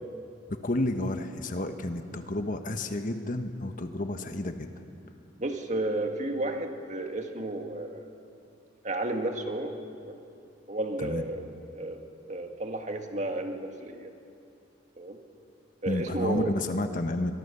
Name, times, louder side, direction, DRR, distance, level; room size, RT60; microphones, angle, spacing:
voice 1, 0.5-4.7 11.0-11.2 15.8-17.3, left 1 dB, 45° left, 7 dB, 1.2 m, -31 dB
voice 2, 5.4-8.1 8.8-9.7 10.0-10.2 10.7-11.4 11.7-12.0 12.3-14.1 15.0-15.2 15.8-16.5, right 2 dB, 40° right, 4 dB, 1.9 m, -32 dB
23.0 x 23.0 x 6.9 m, 2.5 s
head